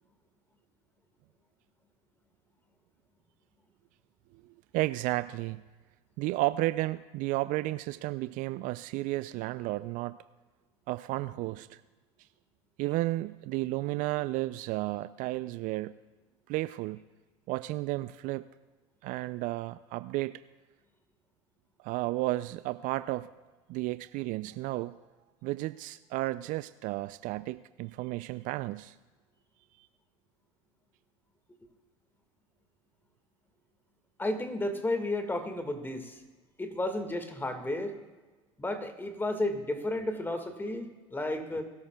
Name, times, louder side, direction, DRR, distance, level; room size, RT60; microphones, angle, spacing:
voice 1, 4.7-5.6 6.2-10.2 10.9-11.8 12.8-15.9 16.5-17.0 17.5-18.5 19.0-20.4 21.8-23.3 23.7-25.0 25.4-28.9, right 18 dB, 55° right, 15 dB, 0.4 m, -32 dB
voice 2, 34.2-36.2 36.6-38.0 38.6-41.6, left 1 dB, 10° left, 7 dB, 1.8 m, -32 dB
21.0 x 13.0 x 2.3 m, 1.3 s
hypercardioid pair, 80°, 17 cm